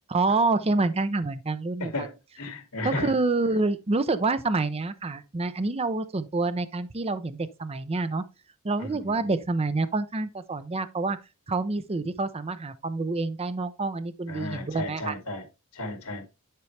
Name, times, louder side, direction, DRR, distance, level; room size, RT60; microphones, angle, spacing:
voice 1, 0.1-2.1 2.8-8.2 8.6-11.2 11.5-15.1, right 3 dB, 25° right, 0.6 m, -27 dB
voice 2, 1.8-3.1 8.8-9.3 14.3-15.5 15.7-16.3, left 2 dB, 80° left, 2.2 m, -34 dB
9.8 x 4.6 x 3.2 m
head